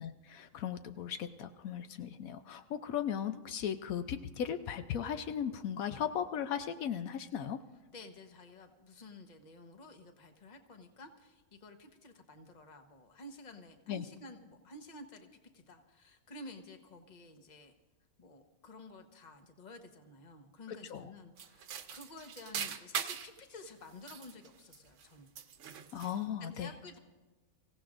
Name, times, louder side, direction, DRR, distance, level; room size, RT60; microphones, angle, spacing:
voice 1, 0.0-7.6 13.9-14.0 20.9-21.1 25.9-26.7, left 9 dB, 75° left, 9 dB, 1.1 m, -37 dB
voice 2, 7.9-17.7 18.2-25.3 26.5-27.0, left 2 dB, 35° left, 6 dB, 1.1 m, -52 dB
sound 1, 21.4-23.4 23.9-25.1 25.4-26.2, right 8 dB, 60° right, 1.0 m, -41 dB
25.0 x 16.0 x 2.5 m, 1.3 s
omnidirectional pair, 1.5 m